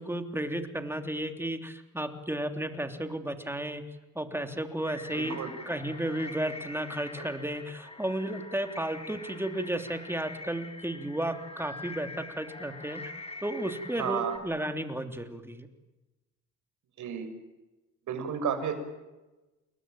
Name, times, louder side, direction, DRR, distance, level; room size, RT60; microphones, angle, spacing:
voice 1, 0.0-3.9 4.1-5.4 5.6-13.1 13.4-15.7, right 1 dB, 10° right, 7 dB, 3.2 m, -33 dB
sound 1, 4.8-14.4, left 2 dB, 20° left, 6.7 m, -44 dB
voice 2, 5.1-5.5 14.0-14.3 17.0-17.3 18.1-18.7, right 7 dB, 75° right, 7 dB, 6.2 m, -32 dB
29.5 x 21.5 x 9.2 m, 1.1 s
cardioid pair, 90°, 30 cm